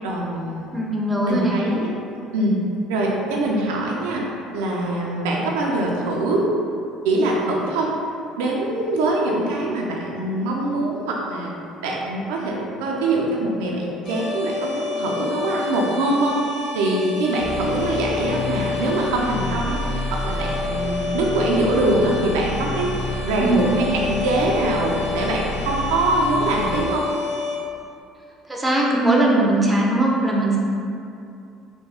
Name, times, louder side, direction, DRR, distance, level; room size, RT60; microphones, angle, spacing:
voice 1, 0.0-0.8 1.3-2.0 2.3-2.6 2.9-4.2 4.5-6.5 7.0-7.9 8.4-11.5 11.8-19.8 20.1-22.9 23.2-27.1, right 2 dB, 85° right, -2 dB, 0.4 m, -23 dB
voice 2, 0.7-1.5 23.4-23.7 28.5-30.6, right 1 dB, 15° right, -3 dB, 0.6 m, -20 dB
sound 1, 14.0-27.6, left 4 dB, 25° left, 1.2 m, -30 dB
sound 2, 17.4-26.8, left 2 dB, 50° left, 0.6 m, -30 dB
3.4 x 2.1 x 3.4 m, 2.5 s
supercardioid pair, 75°, 0 cm